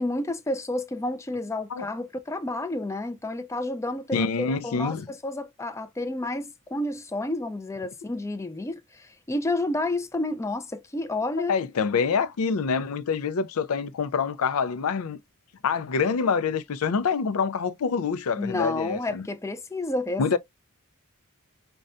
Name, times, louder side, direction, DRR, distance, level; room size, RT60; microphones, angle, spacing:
voice 1, 0.0-11.5 18.4-20.4, left 2 dB, 15° left, 0.4 m, -30 dB
voice 2, 4.1-5.1 11.4-15.2 15.6-19.3 20.2-20.4, left 5 dB, 75° left, 0.4 m, -26 dB
5.2 x 2.2 x 2.5 m
head